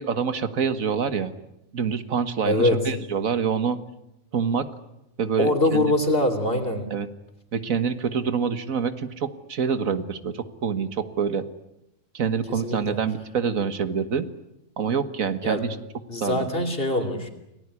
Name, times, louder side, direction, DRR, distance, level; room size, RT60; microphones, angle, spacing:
voice 1, 0.0-1.3 1.7-3.8 4.3-4.7 5.2-5.9 6.9-7.1 7.5-11.5 12.1-14.3 14.8-15.7 16.2-16.5, right 6 dB, 90° right, 11 dB, 1.9 m, -26 dB
voice 2, 2.5-2.9 5.4-6.9 12.6-13.0 15.4-15.6 16.1-17.3, left 1 dB, 45° left, 6 dB, 3.4 m, -23 dB
28.5 x 19.0 x 9.8 m, 0.87 s
omnidirectional pair, 1.4 m